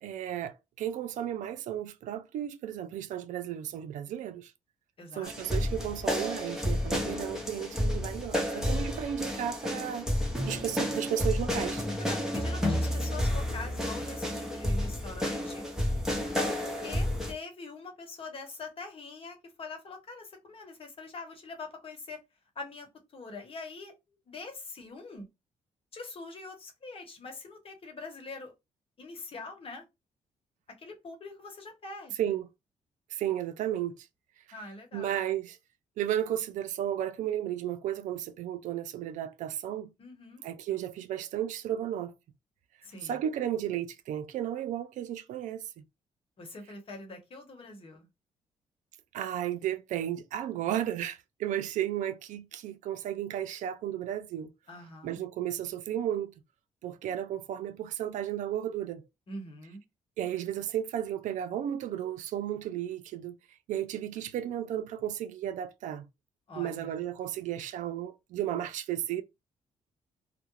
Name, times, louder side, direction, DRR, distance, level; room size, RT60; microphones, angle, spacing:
voice 1, 0.0-4.5 5.2-10.1 10.5-11.8 32.2-32.5 33.1-34.1 34.9-35.6 36.0-39.9 40.4-42.1 43.0-45.8 49.1-54.5 55.0-56.3 56.8-59.0 60.2-63.4 63.7-66.1 66.6-69.2, right 11 dB, 80° right, 0.4 m, -34 dB
voice 2, 5.0-5.6 12.0-15.7 16.4-22.2 22.5-23.9 24.3-25.3 25.9-28.5 29.0-29.9 30.8-32.3 34.5-35.2 40.0-40.4 42.8-43.2 46.4-48.1 54.7-55.2 59.3-59.8 66.5-67.0, left 3 dB, 45° left, 1.0 m, -44 dB
sound 1, 5.2-17.3, left 1 dB, 5° right, 0.8 m, -31 dB
2.3 x 2.1 x 2.9 m
cardioid pair, 85°, 13 cm